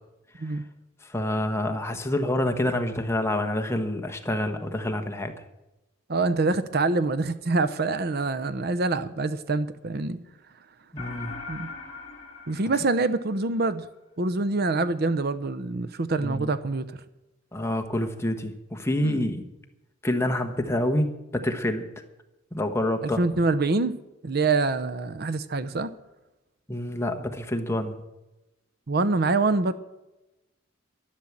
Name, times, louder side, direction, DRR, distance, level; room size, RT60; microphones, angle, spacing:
voice 1, 1.0-5.3 10.9-11.3 16.2-16.5 17.5-19.5 20.0-21.8 22.5-23.2 26.7-27.9, left 1 dB, 15° left, 5 dB, 1.2 m, -27 dB
voice 2, 6.1-10.2 11.5-11.7 12.5-13.9 14.2-17.0 19.0-19.2 23.0-23.9 24.2-25.9 28.9-29.7, right 3 dB, 55° right, 14 dB, 0.7 m, -25 dB
sound 1, 11.0-13.6, left 4 dB, 35° left, 3.3 m, -40 dB
11.5 x 11.5 x 7.3 m, 0.99 s
head